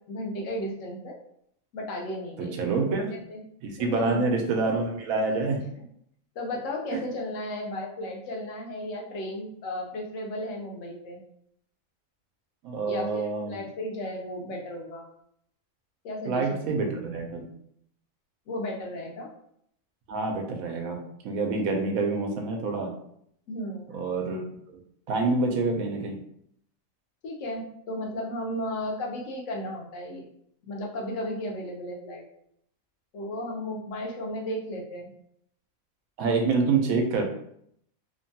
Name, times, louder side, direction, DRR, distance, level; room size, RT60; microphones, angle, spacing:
voice 1, 0.1-1.2 1.7-3.0 3.3-3.4 3.8-4.3 5.8-5.9 6.4-11.2 12.9-15.0 16.0-16.6 18.5-19.3 23.5-24.0 27.2-30.3 30.6-32.2 33.1-35.1, left 1 dB, 70° left, -1 dB, 1.0 m, -34 dB
voice 2, 2.4-3.2 3.6-5.6 6.9-7.0 12.6-13.6 16.3-17.4 20.1-22.9 23.9-24.4 25.1-26.2 36.2-37.2, right 3 dB, 90° right, 3 dB, 1.0 m, -27 dB
2.9 x 2.2 x 2.7 m, 0.70 s
omnidirectional pair, 1.4 m